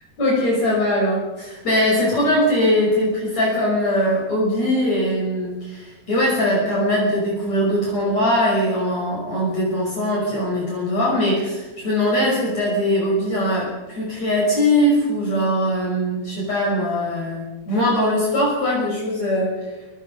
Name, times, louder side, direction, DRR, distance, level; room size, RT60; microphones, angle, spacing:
voice 1, 0.2-19.6, left 1 dB, 45° left, -4 dB, 7.1 m, -21 dB
25.0 x 24.5 x 5.6 m, 1.1 s
omnidirectional pair, 4.4 m